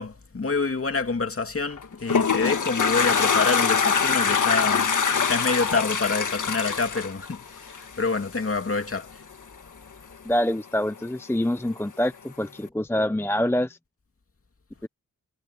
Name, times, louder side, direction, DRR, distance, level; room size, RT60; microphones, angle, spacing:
voice 1, 0.0-5.0 5.2-9.2, left 4 dB, 40° left, 2.6 m, -27 dB
Toilet flush, 1.7-8.1, left 6 dB, 55° left, 1.8 m, -23 dB
voice 2, 10.2-13.8 14.8-14.9, left 1 dB, 5° left, 0.7 m, -25 dB
wide cardioid pair, 90°, 35 cm